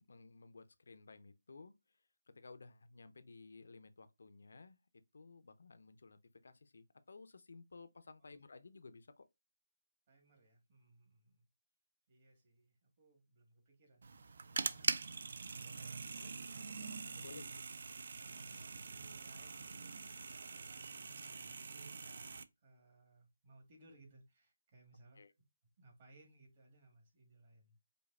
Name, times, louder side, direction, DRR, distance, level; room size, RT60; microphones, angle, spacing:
voice 1, 0.0-4.8 5.1-9.3 14.5-14.8 17.2-17.4 25.1-25.3, left 4 dB, 70° left, 0.5 m, -56 dB
voice 2, 10.1-11.5 12.1-14.9 15.5-16.7 17.0-17.6 18.3-20.0 20.4-22.3 22.6-25.2 25.8-27.8, right 2 dB, 35° right, 1.5 m, -64 dB
sound 1, 14.0-22.4, right 4 dB, 60° right, 0.3 m, -43 dB
5.1 x 2.3 x 2.4 m
figure-of-eight pair, 160°, 0 cm